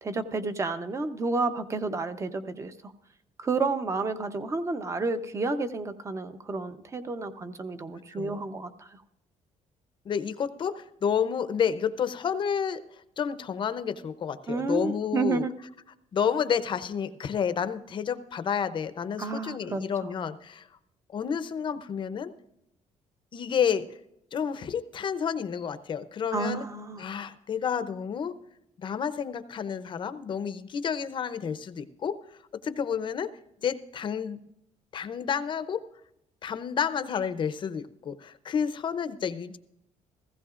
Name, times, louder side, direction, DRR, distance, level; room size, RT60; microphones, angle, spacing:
voice 1, 0.0-2.9 3.4-9.0 14.5-15.5 19.2-19.8 26.3-27.0, right 3 dB, 25° right, 10 dB, 0.8 m, -30 dB
voice 2, 10.0-12.8 13.2-15.4 16.1-20.7 21.1-22.3 23.3-23.9 24.3-26.6 27.0-28.4 28.8-32.2 32.6-33.3 33.6-34.4 34.9-35.8 36.4-39.6, left 7 dB, 40° left, 12 dB, 0.7 m, -30 dB
16.0 x 15.5 x 2.5 m, 0.82 s
cardioid pair, 145°, 13 cm